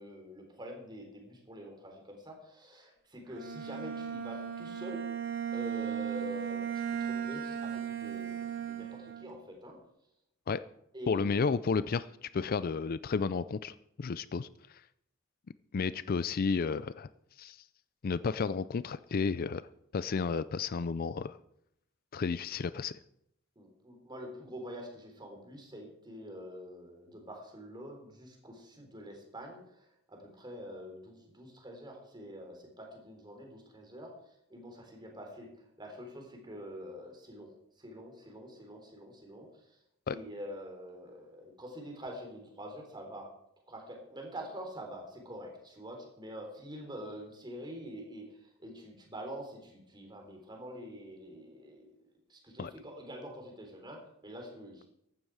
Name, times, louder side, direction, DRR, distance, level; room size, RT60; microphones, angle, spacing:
voice 1, 0.0-5.1 5.5-9.8 10.9-11.3 23.6-29.6 30.1-34.1 34.5-35.5 35.8-37.5 37.8-39.5 40.1-43.3 43.7-48.3 48.6-51.9 52.3-54.9, equal, 20° right, 2 dB, 3.7 m, -46 dB
Bowed string instrument, 3.3-9.4, right 8 dB, 60° right, 2.2 m, -36 dB
voice 2, 11.1-14.8 15.7-17.1 17.4-17.6 18.0-19.6 19.9-21.4 22.1-23.0 40.1-40.2 52.6-52.7, left 5 dB, 45° left, 16 dB, 0.4 m, -32 dB
15.0 x 12.0 x 4.8 m, 0.77 s
head